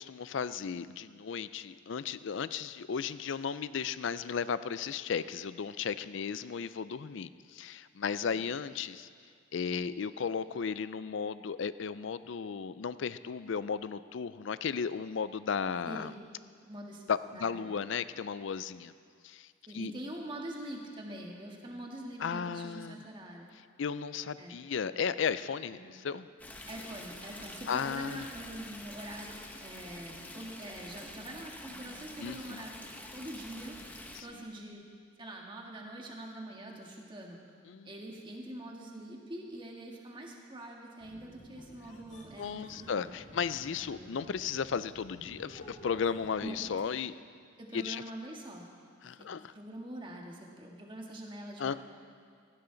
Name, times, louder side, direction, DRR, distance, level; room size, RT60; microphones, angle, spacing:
voice 1, 0.0-9.1 9.5-16.1 17.1-18.9 19.2-19.9 22.2-23.0 23.5-26.3 27.7-28.3 32.2-32.7 34.1-34.5 37.7-37.9 42.4-47.1 47.7-48.0 49.0-49.5 51.6-51.7, left 6 dB, 65° left, 15 dB, 0.4 m, -35 dB
voice 2, 15.9-16.2 16.6-17.0 17.3-17.5 19.7-23.5 24.4-24.6 25.7-25.9 26.7-32.9 33.1-33.9 34.2-34.9 35.2-37.4 37.9-43.0 43.7-44.1 46.4-46.6 47.6-48.7 49.2-51.7, right 1 dB, 25° right, 0 dB, 1.7 m, -44 dB
Stream, 26.4-34.2, left 1 dB, 10° left, 0.9 m, -47 dB
sound 1, 41.0-46.8, equal, 35° left, 1.7 m, -53 dB
17.0 x 15.5 x 3.9 m, 2.2 s
head